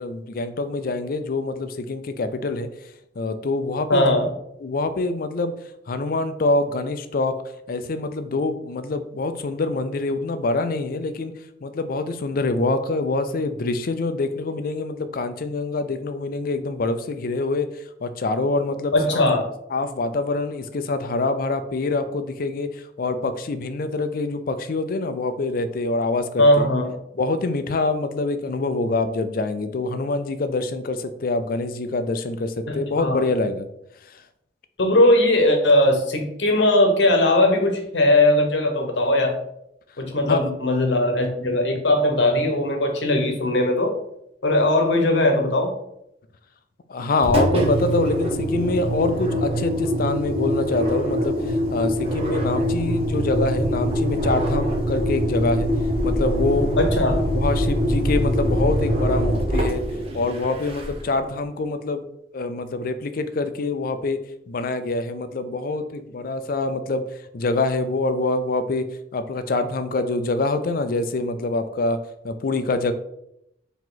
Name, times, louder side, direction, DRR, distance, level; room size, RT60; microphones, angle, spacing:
voice 1, 0.0-2.7 3.2-4.1 4.6-5.5 5.9-7.3 7.7-11.3 11.6-19.3 19.7-26.7 27.1-33.7 34.1-34.2 40.3-40.4 46.9-55.7 56.0-56.7 57.0-59.8 60.1-62.0 62.3-67.0 67.3-72.0 72.2-72.9, left 3 dB, 50° left, 10 dB, 0.4 m, -25 dB
voice 2, 3.9-4.3 18.9-19.4 26.4-26.9 32.7-33.2 34.8-39.4 40.0-43.9 44.4-45.7 56.8-57.2, left 1 dB, 75° left, 4 dB, 0.9 m, -19 dB
Engine, 47.2-61.2, equal, 35° right, 0.8 m, -23 dB
4.7 x 2.9 x 3.9 m, 0.78 s
head